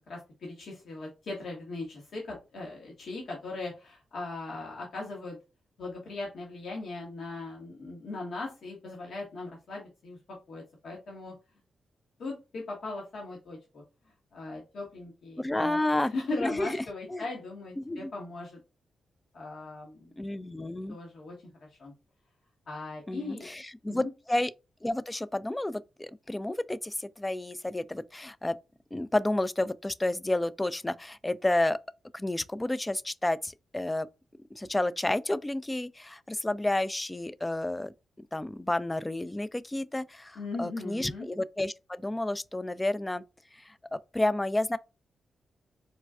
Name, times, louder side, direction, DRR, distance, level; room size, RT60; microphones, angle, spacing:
voice 1, 0.1-5.4 5.8-11.3 12.2-18.6 19.3-20.1 20.4-20.5 20.9-21.9 22.7-23.5 23.9-24.1 40.3-41.3, left 3 dB, 70° left, 1.1 m, -39 dB
voice 2, 15.4-16.1 16.4-16.7 17.1-17.2 17.8-18.1 20.2-21.0 23.1-24.5 24.8-28.6 28.9-31.8 32.1-34.1 34.6-43.2 43.6-44.8, left 1 dB, 20° left, 0.3 m, -31 dB
4.2 x 2.3 x 2.3 m
supercardioid pair, 50°, 0 cm